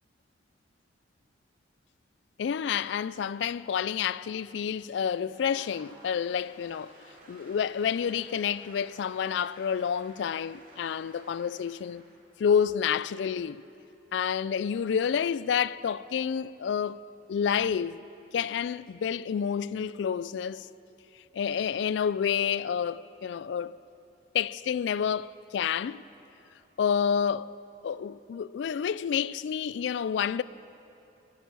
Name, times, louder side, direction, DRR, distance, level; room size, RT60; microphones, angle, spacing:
voice 1, 2.4-6.9 7.3-12.0 12.4-13.6 14.1-17.0 17.3-18.0 18.3-20.7 21.3-23.8 24.3-26.0 26.8-27.5 27.8-30.4, left 7 dB, 65° left, 0.3 m, -29 dB
Applause / Crowd, 5.0-12.3, right 2 dB, 45° right, 2.9 m, -55 dB
22.5 x 9.0 x 7.0 m
head